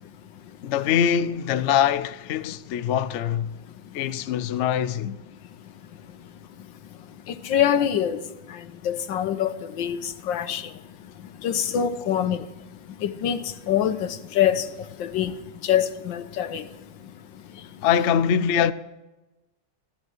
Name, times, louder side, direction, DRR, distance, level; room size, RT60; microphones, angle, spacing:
voice 1, 0.6-3.6 3.9-5.2 17.8-18.7, left 8 dB, 65° left, 0.7 m, -23 dB
voice 2, 7.5-8.2 8.8-9.5 9.8-10.0 10.3-10.6 11.4-12.4 13.0-13.4 13.7-14.1 14.3-14.6 15.1-15.3 15.6-16.6, left 9 dB, 90° left, 1.7 m, -23 dB
15.0 x 13.0 x 6.1 m
omnidirectional pair, 2.0 m